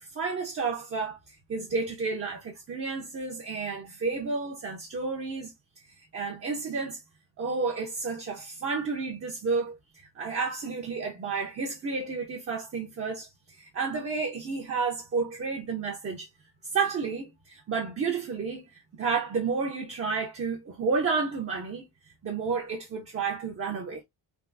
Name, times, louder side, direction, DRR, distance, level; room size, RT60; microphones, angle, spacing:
voice 1, 0.0-5.5 6.1-7.0 7.4-9.8 10.2-13.3 13.6-16.3 16.6-18.6 18.9-21.8 22.2-24.0, right 4 dB, 30° right, 0.6 m, -31 dB
3.5 x 2.4 x 2.4 m
wide cardioid pair, 175°, 44 cm